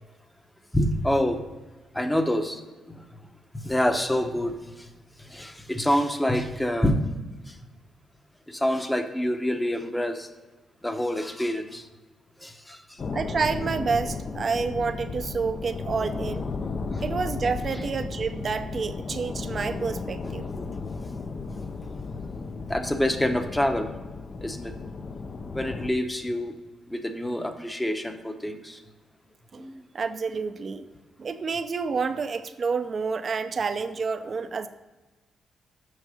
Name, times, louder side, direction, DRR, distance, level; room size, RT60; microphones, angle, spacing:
voice 1, 0.7-1.4 1.9-2.6 3.0-3.1 3.6-4.9 5.2-7.0 7.5-7.6 8.5-10.3 10.8-11.9 12.4-13.0 16.9-17.0 20.5-20.7 22.7-23.9 24.4-24.7 25.5-26.5 26.9-28.8 29.6-29.8, left 1 dB, 10° left, 7 dB, 0.8 m, -27 dB
sound 1, 13.0-25.9, left 4 dB, 40° left, 0.6 m, -34 dB
voice 2, 13.1-16.5 17.0-20.5 29.5-29.6 29.9-30.8 31.2-34.7, right 5 dB, 45° right, 9 dB, 0.6 m, -29 dB
6.5 x 6.4 x 5.0 m, 1.2 s
cardioid pair, 100°, 0 cm